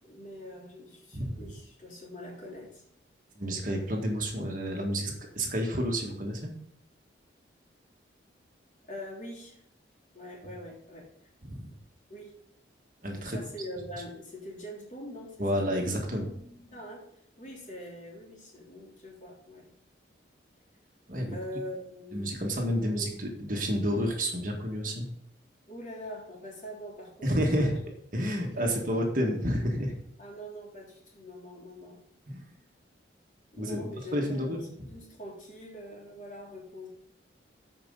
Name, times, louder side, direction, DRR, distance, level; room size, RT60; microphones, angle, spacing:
voice 1, 0.0-2.8 8.9-9.6 10.1-11.3 12.1-12.4 13.2-15.6 16.7-19.7 21.3-22.3 22.8-23.1 25.7-27.7 28.6-29.0 30.2-32.0 33.5-36.9, equal, 40° left, -5 dB, 3.4 m, -43 dB
voice 2, 3.4-6.5 11.4-11.7 13.0-13.4 15.4-16.7 21.1-21.4 22.1-25.1 27.2-27.7 28.1-30.0 32.3-32.4 33.6-33.8 34.1-34.6, equal, 45° right, 1 dB, 1.8 m, -30 dB
13.5 x 5.2 x 4.0 m, 0.72 s
head